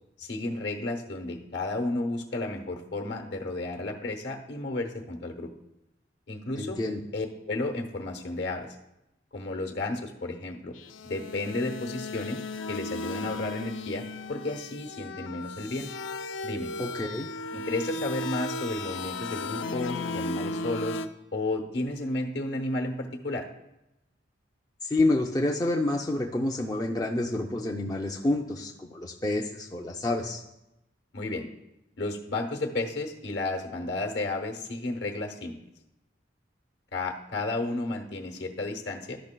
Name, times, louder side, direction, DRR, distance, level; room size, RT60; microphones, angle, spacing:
voice 1, 0.2-5.5 6.3-6.8 7.1-8.7 9.3-10.7 11.0-12.4 12.7-15.9 16.4-16.7 17.5-21.0 21.3-23.4 31.1-31.4 32.0-35.5 36.9-39.2, left 2 dB, 65° left, 4 dB, 0.9 m, -32 dB
voice 2, 6.6-7.0 16.8-17.3 24.8-30.4, left 2 dB, 20° left, 0 dB, 0.4 m, -28 dB
sound 1, 10.8-21.1, left 2 dB, 85° left, 0.4 m, -36 dB
12.0 x 5.7 x 2.2 m, 0.91 s
head